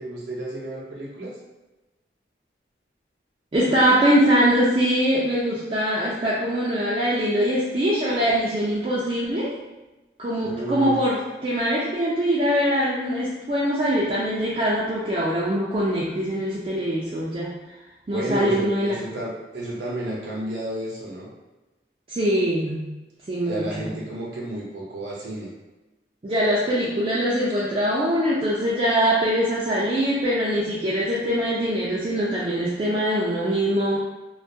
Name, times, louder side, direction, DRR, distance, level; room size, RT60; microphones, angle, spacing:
voice 1, 0.0-1.3 10.4-11.0 18.1-21.3 23.5-25.5, right 1 dB, 80° right, -5 dB, 0.6 m, -31 dB
voice 2, 3.5-9.6 10.2-17.5 18.1-19.0 22.1-22.9 23.3-23.9 26.2-34.0, equal, 30° right, -8 dB, 0.3 m, -23 dB
2.3 x 2.1 x 2.6 m, 1.1 s
head